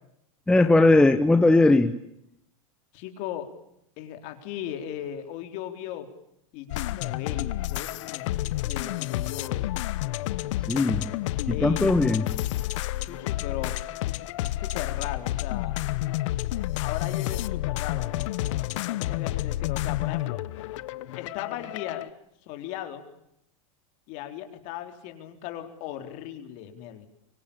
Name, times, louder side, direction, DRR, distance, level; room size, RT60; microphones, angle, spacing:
voice 1, 0.5-1.9 10.7-11.1 11.5-12.3, left 2 dB, 5° left, 8 dB, 1.0 m, -19 dB
voice 2, 2.9-3.5 4.0-6.1 6.5-9.7 11.5-11.9 13.0-13.9 14.4-15.8 16.8-20.4 21.2-22.0 22.5-23.0 24.1-27.1, left 11 dB, 45° left, 6 dB, 4.2 m, -37 dB
sound 1, 6.7-22.1, left 15 dB, 60° left, 1.0 m, -30 dB
24.5 x 24.5 x 8.8 m, 0.76 s
supercardioid pair, 155°, 18 cm